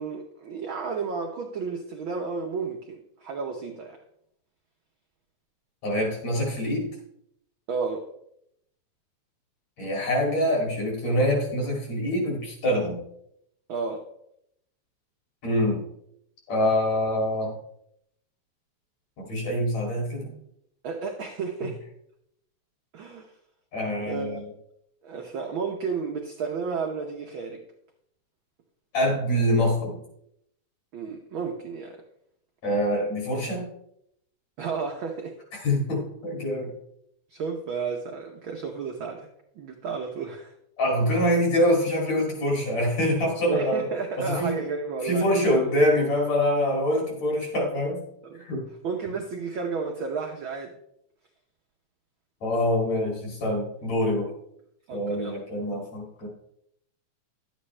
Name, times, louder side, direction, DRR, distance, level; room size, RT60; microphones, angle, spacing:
voice 1, 0.0-4.0 7.7-8.1 13.7-14.1 20.8-21.8 22.9-23.3 24.0-24.4 25.0-27.6 30.9-32.0 34.6-35.4 37.3-39.3 39.6-40.5 43.4-45.2 48.2-48.4 48.8-50.7 54.9-55.4, right 5 dB, 75° right, 1 dB, 1.1 m, -32 dB
voice 2, 5.8-6.9 9.8-13.0 15.4-15.8 16.5-17.5 19.2-20.3 23.7-24.5 28.9-30.0 32.6-33.7 35.6-36.7 40.8-43.9 44.2-44.6 45.0-48.0 48.4-48.6 52.4-54.3 54.9-56.3, left 1 dB, 65° left, -1 dB, 3.9 m, -25 dB
11.5 x 8.5 x 3.2 m, 0.75 s
omnidirectional pair, 3.4 m